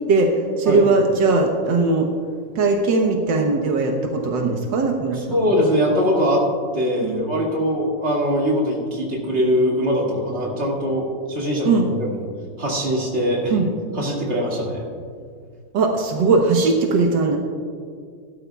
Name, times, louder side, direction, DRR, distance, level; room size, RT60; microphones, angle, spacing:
voice 1, 0.1-2.1 2.6-5.5 7.0-7.2 11.6-11.9 13.5-13.7 15.7-17.4, right 3 dB, 85° right, 2 dB, 1.7 m, -19 dB
voice 2, 5.1-6.4 6.7-12.2 12.6-13.5 13.9-14.8, equal, 40° right, -3 dB, 2.4 m, -22 dB
16.5 x 12.5 x 2.3 m, 2.1 s
omnidirectional pair, 1.9 m